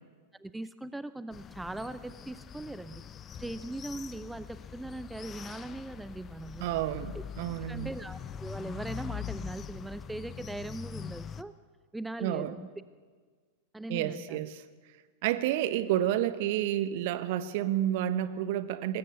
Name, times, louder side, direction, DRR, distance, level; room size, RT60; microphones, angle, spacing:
voice 1, 0.4-3.0 3.4-6.7 7.1-7.2 7.7-11.5 11.9-12.7 13.7-14.4, right 2 dB, 5° right, 14 dB, 0.6 m, -40 dB
sound 1, 1.3-11.4, left 8 dB, 25° left, 0.8 m, -43 dB
voice 2, 6.6-7.9 12.2-12.6 13.9-14.6 15.2-19.0, right 12 dB, 50° right, 13 dB, 1.2 m, -30 dB
24.5 x 20.5 x 6.8 m, 1.5 s
figure-of-eight pair, 90°, 0 cm